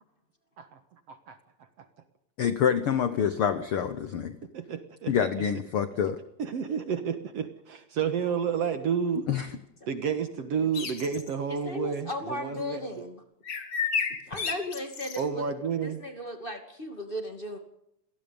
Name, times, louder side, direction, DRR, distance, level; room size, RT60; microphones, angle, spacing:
voice 1, 2.4-4.4 5.1-6.2 9.3-9.5, left 8 dB, 60° left, 11 dB, 1.4 m, -26 dB
voice 2, 4.5-5.1 6.4-9.3 9.9-12.9 15.2-16.0, right 7 dB, 55° right, 9 dB, 2.2 m, -30 dB
sound 1, 10.7-11.3 13.4-15.2, left 6 dB, 40° left, 2.2 m, -31 dB
voice 3, 11.5-13.2 14.1-15.4 15.8-17.6, left 1 dB, 20° left, 5 dB, 2.2 m, -37 dB
27.5 x 18.0 x 5.4 m, 0.78 s
omnidirectional pair, 3.7 m